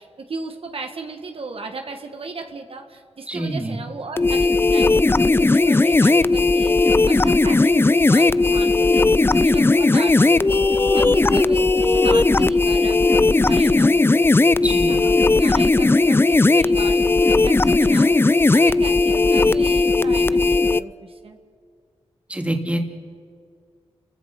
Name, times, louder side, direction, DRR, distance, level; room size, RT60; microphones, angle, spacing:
voice 1, 0.0-14.2 14.6-18.2 18.5-21.4, right 3 dB, 60° right, 4 dB, 1.7 m, -36 dB
voice 2, 3.3-3.9 14.6-15.0 22.3-22.8, right 1 dB, 10° right, 4 dB, 2.7 m, -26 dB
sound 1, 4.2-20.8, left 3 dB, 20° left, 0.5 m, -17 dB
30.0 x 15.5 x 6.0 m, 2.1 s
cardioid pair, 60°, 11 cm